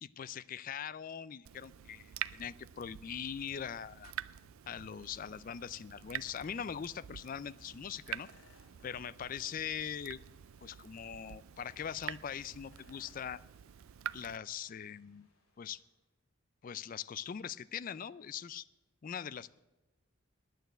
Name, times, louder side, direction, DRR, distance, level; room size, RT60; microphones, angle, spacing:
voice 1, 0.0-4.1 4.7-8.3 8.8-10.2 10.6-13.4 14.1-15.3 15.6-15.8 16.6-18.6 19.0-19.6, left 8 dB, 40° left, 17 dB, 0.3 m, -41 dB
Water tap faucet / Drip, 1.4-14.4, right 11 dB, 70° right, 0.4 m, -47 dB
sound 1, 2.1-16.0, left 2 dB, 80° left, 3.1 m, -68 dB
10.5 x 9.1 x 7.9 m, 1.1 s
head